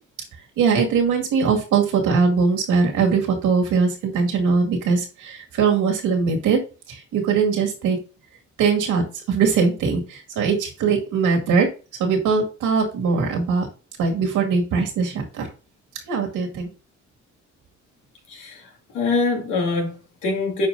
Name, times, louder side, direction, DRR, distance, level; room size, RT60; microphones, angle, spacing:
voice 1, 0.6-6.6 6.9-8.0 8.6-11.7 12.0-13.7 14.0-15.5 16.1-16.7, right 5 dB, 85° right, 2.2 m, -21 dB
voice 2, 18.3-18.7 18.9-20.7, left 3 dB, 85° left, 2.4 m, -24 dB
11.0 x 4.6 x 2.7 m
cardioid pair, 90°, 30 cm